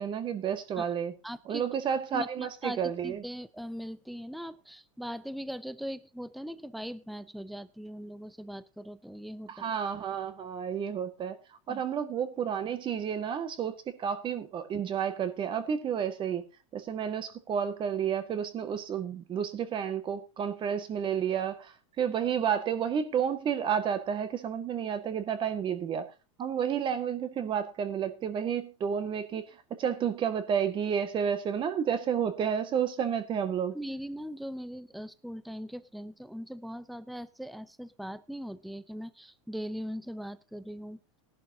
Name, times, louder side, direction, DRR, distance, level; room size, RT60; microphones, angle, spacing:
voice 1, 0.0-1.1 1.5-3.2 9.5-11.4 11.7-16.4 16.7-26.1 26.4-29.4 29.8-33.8, right 8 dB, 30° right, 1.7 m, -31 dB
voice 2, 1.2-1.6 2.1-9.7 11.7-11.8 33.7-41.0, equal, ahead, 0.6 m, -40 dB
18.0 x 11.5 x 2.8 m
supercardioid pair, 135°, 17 cm